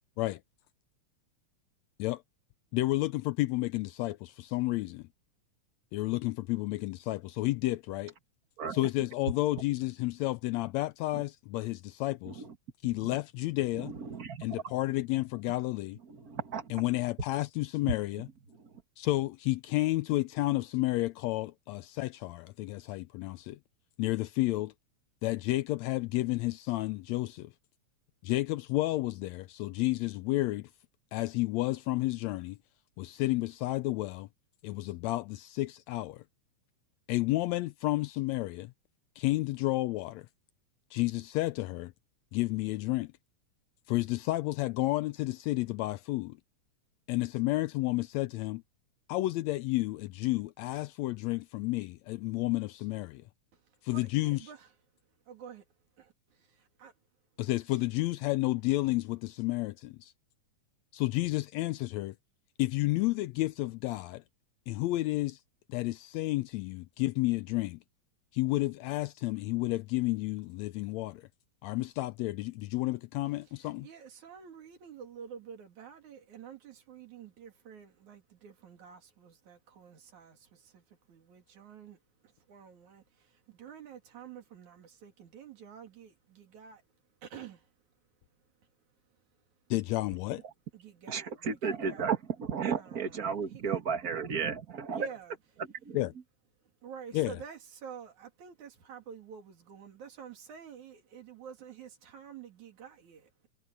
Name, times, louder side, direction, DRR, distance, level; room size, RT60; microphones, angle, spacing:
voice 1, 2.7-5.1 5.9-8.1 8.7-12.4 12.8-13.9 14.4-16.0 16.7-18.3 19.0-23.6 24.0-24.7 25.2-27.5 28.2-30.7 31.1-32.6 33.0-34.3 34.6-36.2 37.1-38.7 39.2-40.3 40.9-41.9 42.3-43.1 43.9-46.4 47.1-48.6 49.1-53.2 53.8-54.5 57.4-60.1 60.9-62.1 62.6-64.2 64.7-65.4 65.7-67.8 68.3-71.3 71.6-73.9 89.7-90.4 95.9-96.1 97.1-97.4, left 19 dB, 80° left, 1.6 m, -31 dB
voice 2, 13.7-14.6 16.1-16.7 91.1-95.1, right 6 dB, 35° right, 1.9 m, -34 dB
voice 3, 53.9-54.7 55.3-55.6 56.0-56.9 57.7-57.8 73.6-82.0 82.2-86.8 87.2-87.7 90.7-92.1 92.7-93.8 94.9-95.4 96.8-103.5, right 7 dB, 75° right, 4.0 m, -49 dB
omnidirectional pair, 3.4 m